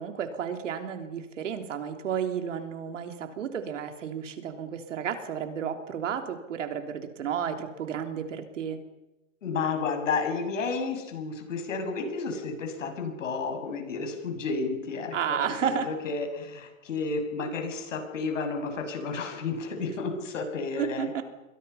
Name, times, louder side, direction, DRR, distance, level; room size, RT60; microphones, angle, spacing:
voice 1, 0.0-8.8 15.1-15.9 20.8-21.2, right 8 dB, 75° right, 6 dB, 3.5 m, -32 dB
voice 2, 9.4-21.1, left 4 dB, 80° left, 4 dB, 7.5 m, -32 dB
29.0 x 22.5 x 5.7 m, 1.0 s
hypercardioid pair, 170°, 37 cm